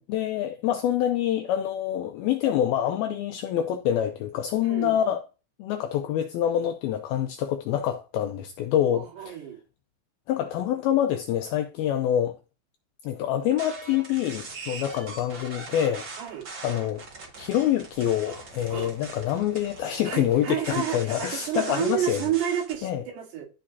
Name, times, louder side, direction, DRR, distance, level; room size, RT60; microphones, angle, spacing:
voice 1, 0.1-5.2 5.6-9.3 10.3-12.4 13.0-16.1 16.6-17.1 17.4-22.2 22.8-23.0, left 10 dB, 85° left, 2.2 m, -26 dB
voice 2, 4.6-5.0 8.9-9.6 16.2-16.5 18.3-18.9 20.0-23.5, right 10 dB, 75° right, 3.9 m, -30 dB
sound 1, 13.5-22.8, right 4 dB, 45° right, 1.5 m, -41 dB
14.0 x 4.9 x 2.8 m
omnidirectional pair, 5.1 m